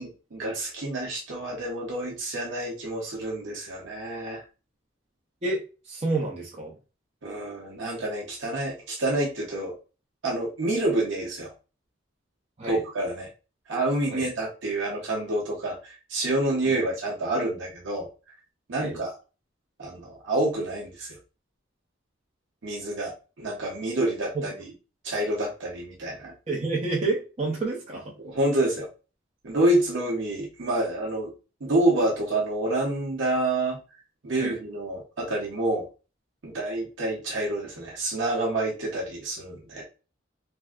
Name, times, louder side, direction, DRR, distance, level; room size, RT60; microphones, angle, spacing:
voice 1, 0.0-4.5 7.2-9.7 10.2-11.5 12.6-13.3 13.7-18.1 18.7-19.2 19.8-21.2 22.6-24.5 25.0-26.3 28.2-28.9 29.4-31.3 31.6-33.8 34.2-35.9 36.4-39.8, right 1 dB, 75° right, -2 dB, 0.8 m, -28 dB
voice 2, 5.4-6.7 12.6-12.8 14.1-14.3 16.7-16.9 18.8-19.0 24.3-24.4 26.5-28.1 34.4-34.5, right 3 dB, 35° right, -3 dB, 0.6 m, -29 dB
3.4 x 2.5 x 2.3 m, 0.32 s
head